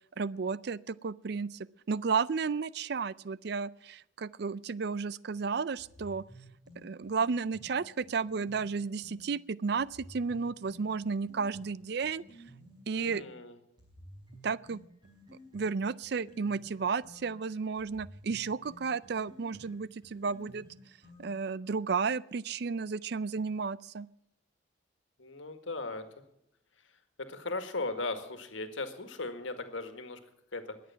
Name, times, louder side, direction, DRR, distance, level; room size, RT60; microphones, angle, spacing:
voice 1, 0.2-1.6 1.9-6.2 6.8-12.2 12.9-13.2 14.4-14.8 15.5-20.6 21.2-24.1, right 5 dB, 55° right, 20 dB, 0.4 m, -33 dB
sound 1, 5.8-9.3 9.8-13.3 13.8-21.6, equal, 20° right, 5.4 m, -54 dB
voice 2, 12.9-13.6 25.2-26.0 27.2-30.2 30.5-30.6, left 3 dB, 75° left, 8 dB, 1.8 m, -37 dB
21.5 x 8.5 x 5.7 m, 0.79 s
head